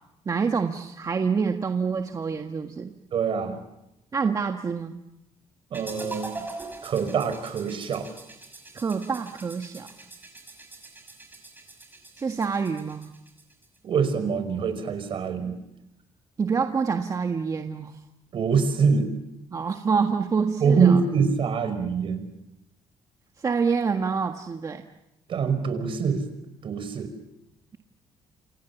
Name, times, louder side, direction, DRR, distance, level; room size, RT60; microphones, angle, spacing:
voice 1, 0.2-2.9 4.1-5.0 8.7-9.9 12.2-13.1 16.4-18.0 19.5-21.0 23.4-24.8, right 5 dB, 35° right, 5 dB, 1.7 m, -27 dB
voice 2, 3.1-3.6 5.7-6.4 6.8-8.1 13.8-15.5 18.3-19.1 20.6-22.3 25.3-26.2 26.6-27.1, right 5 dB, 55° right, 10 dB, 5.4 m, -24 dB
sound 1, 5.7-13.8, right 2 dB, 20° right, 6.3 m, -43 dB
29.0 x 27.0 x 7.3 m, 0.89 s
cardioid pair, 105°, 11 cm